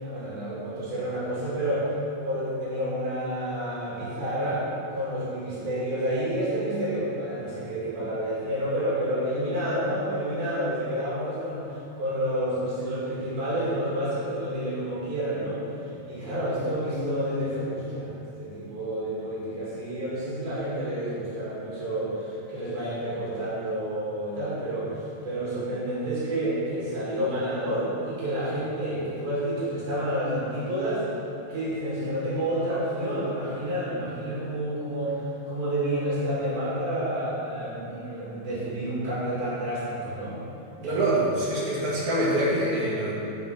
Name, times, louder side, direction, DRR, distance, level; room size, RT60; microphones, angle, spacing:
voice 1, 0.0-1.9 2.2-4.6 4.9-11.6 12.0-15.6 16.1-31.0 31.5-40.4 40.8-41.4, right 1 dB, 75° right, -9 dB, 4.1 m, -29 dB
voice 2, 40.8-43.1, right 1 dB, 60° right, -6 dB, 2.9 m, -25 dB
7.2 x 5.9 x 5.9 m, 2.8 s
omnidirectional pair, 4.3 m